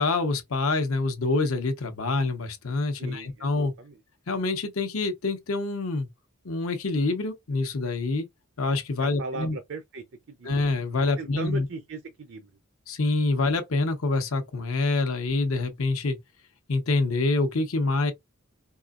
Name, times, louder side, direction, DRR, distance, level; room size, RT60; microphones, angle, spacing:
voice 1, 0.0-3.7 4.3-6.1 6.4-8.3 8.6-9.6 10.4-11.7 12.9-16.2 16.7-18.1, left 3 dB, 75° left, 0.9 m, -26 dB
voice 2, 3.0-4.0 9.0-10.5 11.2-12.5, right 2 dB, 60° right, 0.6 m, -38 dB
4.7 x 2.8 x 2.4 m
head